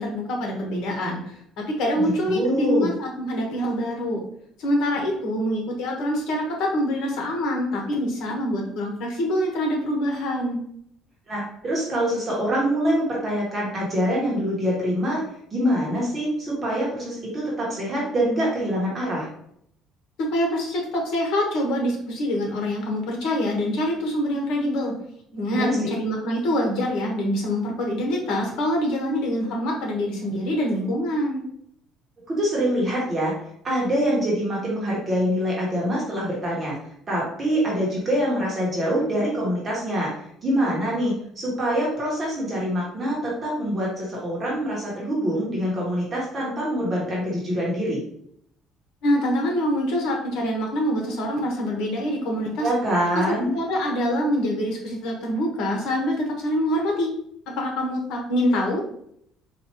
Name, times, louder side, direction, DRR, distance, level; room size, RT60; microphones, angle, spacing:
voice 1, 0.0-4.2 4.6-10.6 20.2-24.9 25.3-31.4 49.0-52.7 53.1-53.2 53.5-57.1 57.5-58.8, equal, 70° left, 0 dB, 1.2 m, -25 dB
voice 2, 1.9-2.9 11.3-15.2 15.5-19.3 25.5-25.8 32.3-33.3 33.6-36.8 37.1-40.1 40.4-48.0 52.6-53.6, equal, 25° right, -5 dB, 1.1 m, -25 dB
4.2 x 2.5 x 2.9 m, 0.69 s
cardioid pair, 160°, 0 cm